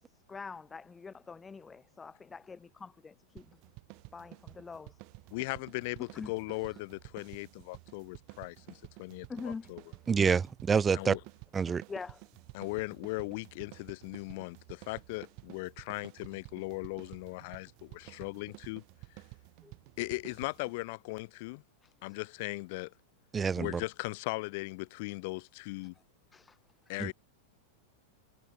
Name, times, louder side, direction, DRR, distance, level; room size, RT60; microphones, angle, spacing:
voice 1, 0.3-3.4 4.1-4.9 6.1-6.3 9.3-9.7 11.9-12.2 15.8-15.9 19.6-19.7 21.8-21.9 26.3-26.6 26.9-27.0, left 5 dB, 15° left, 1.0 m, -44 dB
sound 1, 3.4-20.8, right 32 dB, 45° right, 4.6 m, -52 dB
voice 2, 5.3-9.8 10.9-11.2 12.5-18.8 20.0-21.6 22.0-22.9 23.6-25.9 26.9-27.1, left 25 dB, 50° left, 3.7 m, -38 dB
voice 3, 10.1-11.2 11.5-11.8 23.3-23.8 27.0-27.1, right 6 dB, 20° right, 1.7 m, -27 dB
figure-of-eight pair, 90°, 0 cm